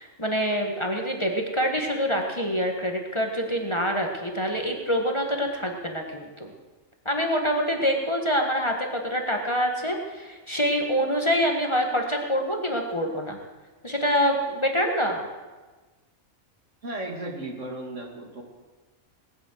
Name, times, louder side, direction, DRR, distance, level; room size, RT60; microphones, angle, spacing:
voice 1, 0.0-6.5 7.0-13.4 13.8-15.2, equal, 20° left, 2 dB, 1.6 m, -26 dB
voice 2, 16.8-18.4, right 1 dB, 65° right, 1 dB, 2.6 m, -35 dB
19.5 x 7.4 x 7.8 m, 1.3 s
omnidirectional pair, 1.3 m